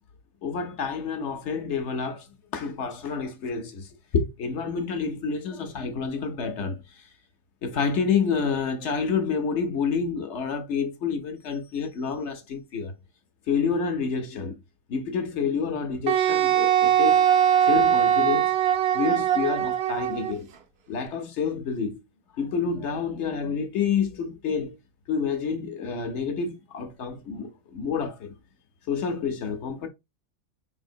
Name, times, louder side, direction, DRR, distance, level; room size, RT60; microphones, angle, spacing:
voice 1, 0.4-2.2 2.5-3.9 4.1-6.8 7.6-12.9 13.5-14.6 14.9-17.2 17.6-18.5 18.9-20.4 20.9-22.0 22.4-24.7 25.1-28.3 28.9-29.9, left 5 dB, 60° left, 0.9 m, -28 dB
Wind instrument woodwind instrument, 16.1-20.4, right 10 dB, 60° right, 0.7 m, -21 dB
4.2 x 3.4 x 2.6 m
omnidirectional pair, 1.4 m